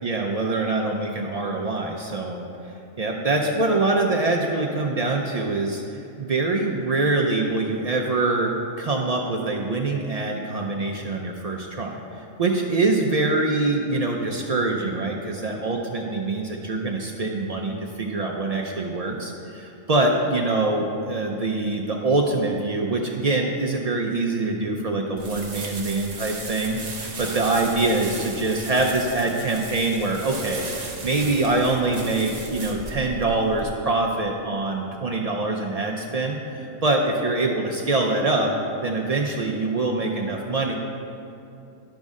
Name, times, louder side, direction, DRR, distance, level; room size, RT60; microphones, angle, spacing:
voice 1, 0.0-2.5 3.0-38.5 38.8-40.7, right 2 dB, 85° right, 0 dB, 0.3 m, -24 dB
sound 1, 25.2-33.6, right 3 dB, 40° right, 0.7 m, -36 dB
11.5 x 5.2 x 3.6 m, 2.7 s
omnidirectional pair, 1.4 m